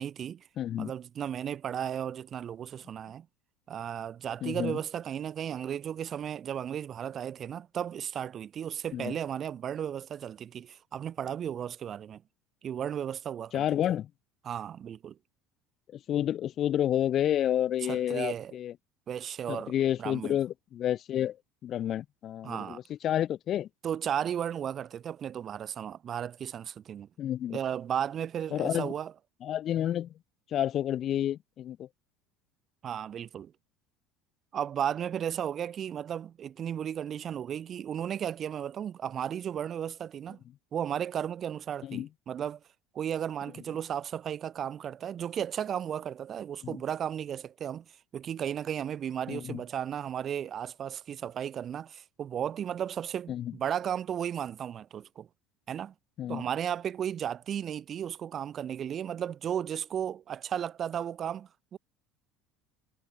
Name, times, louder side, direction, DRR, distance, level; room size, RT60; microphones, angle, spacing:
voice 1, 0.0-0.5 0.8-3.3 3.7-12.2 12.6-13.6 14.4-15.2 17.8-18.5 19.1-19.7 20.0-20.4 22.4-22.8 23.8-27.1 27.5-29.1 32.8-33.5 34.5-40.4 40.7-42.6 42.9-47.9 48.1-55.3 55.7-55.9 56.3-61.8, right 9 dB, 45° right, 0.3 m, -34 dB
voice 2, 0.6-0.9 4.4-4.8 8.9-9.2 13.5-14.1 15.9-18.7 19.5-21.4 21.6-23.7 27.2-27.6 28.5-28.9 29.4-30.1 30.5-31.9 41.8-42.1 46.6-46.8 49.3-49.6 53.3-53.5 56.2-56.5, left 11 dB, 50° left, 0.4 m, -30 dB
hypercardioid pair, 80°, 0 cm